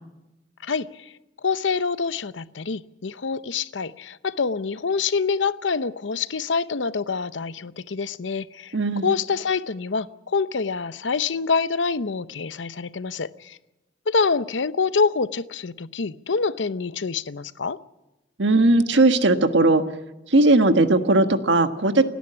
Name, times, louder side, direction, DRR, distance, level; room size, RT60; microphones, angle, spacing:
voice 1, 0.6-1.1 1.4-8.7 9.0-13.6 14.1-17.8, left 5 dB, 90° left, 15 dB, 0.8 m, -26 dB
voice 2, 8.7-9.1 18.4-19.8 20.3-22.0, right 2 dB, 75° right, 8 dB, 1.5 m, -18 dB
30.0 x 10.5 x 10.0 m, 0.99 s
head